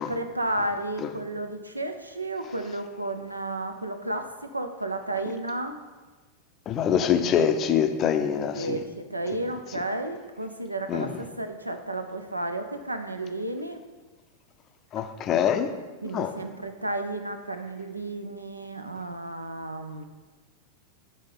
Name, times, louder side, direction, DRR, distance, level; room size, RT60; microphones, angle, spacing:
voice 1, 0.0-4.3 4.5-5.8 8.5-11.1 11.4-13.8 16.0-20.1, right 2 dB, 85° right, 7 dB, 0.5 m, -32 dB
voice 2, 6.7-8.8 10.9-11.2 14.9-15.7 16.1-16.3, left 8 dB, 30° left, 8 dB, 0.5 m, -24 dB
5.3 x 3.6 x 5.5 m, 1.3 s
figure-of-eight pair, 90°, 0 cm